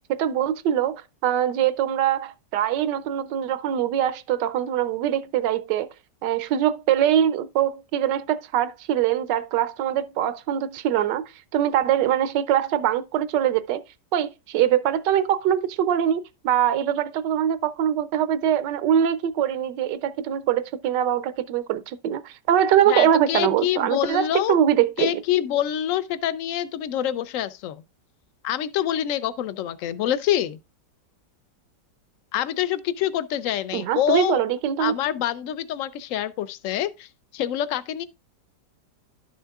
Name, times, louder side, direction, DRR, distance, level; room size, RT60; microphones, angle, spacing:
voice 1, 0.1-5.9 6.2-11.2 11.5-13.8 14.1-25.2 33.7-34.9, right 10 dB, 80° right, 1.2 m, -23 dB
voice 2, 22.9-24.6 25.0-27.8 28.4-30.6 32.3-34.4 34.8-37.1 37.3-38.0, left 11 dB, 70° left, 0.7 m, -26 dB
11.5 x 6.3 x 2.3 m
omnidirectional pair, 1.9 m